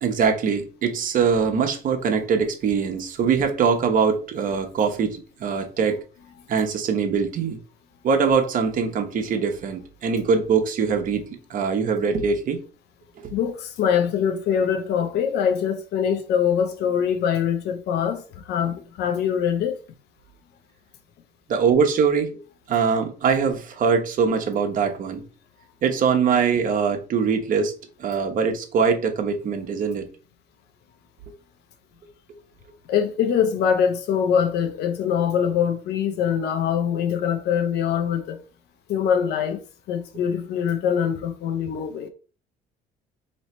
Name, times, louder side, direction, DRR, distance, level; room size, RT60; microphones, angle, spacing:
voice 1, 0.0-6.0 6.5-7.6 8.0-12.6 13.2-13.3 21.5-22.4 22.7-25.2 25.8-27.7 28.0-30.1, right 6 dB, 55° right, 1.0 m, -22 dB
voice 2, 13.3-19.8 32.9-38.4 38.9-39.6 39.9-42.1, left 8 dB, 75° left, 0.8 m, -23 dB
3.1 x 2.9 x 4.3 m
cardioid pair, 110°, 17 cm